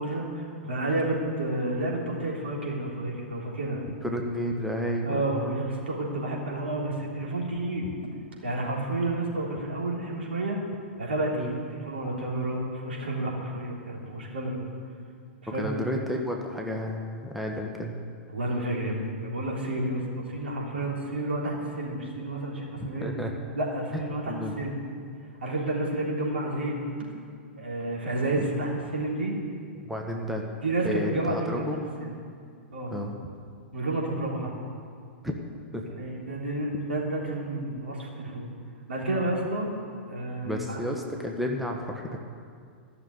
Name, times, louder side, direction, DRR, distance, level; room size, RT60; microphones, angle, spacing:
voice 1, 0.0-3.9 5.0-7.9 8.4-10.6 11.0-14.6 15.4-15.7 18.3-23.1 23.6-24.8 25.4-26.8 27.6-29.4 30.6-31.6 32.0-32.1 32.7-32.9 33.7-34.5 35.9-38.5 38.9-39.7 40.1-40.8, right 2 dB, 75° right, -3 dB, 3.6 m, -30 dB
voice 2, 4.0-5.6 7.8-7.9 11.3-11.5 15.5-18.0 23.0-23.3 23.9-24.0 24.3-24.5 28.3-28.7 29.8-30.4 30.8-31.8 32.9-33.1 35.2-35.3 35.7-35.9 40.4-42.2, equal, ahead, 0 dB, 1.4 m, -32 dB
14.5 x 6.9 x 9.6 m, 2.2 s
figure-of-eight pair, 105°, 6 cm